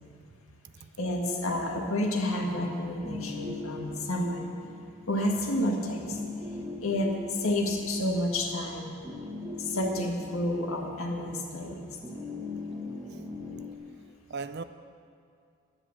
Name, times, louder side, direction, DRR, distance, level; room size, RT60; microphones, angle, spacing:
voice 1, 1.0-4.5 5.1-6.2 6.8-9.0 9.6-12.0, left 1 dB, 75° left, 1 dB, 1.7 m, -30 dB
sound 1, 1.4-13.8, left 2 dB, 15° right, 1.1 m, -41 dB
voice 2, 14.3-14.6, right 4 dB, 50° right, 11 dB, 0.4 m, -38 dB
10.5 x 9.7 x 7.2 m, 2.3 s
head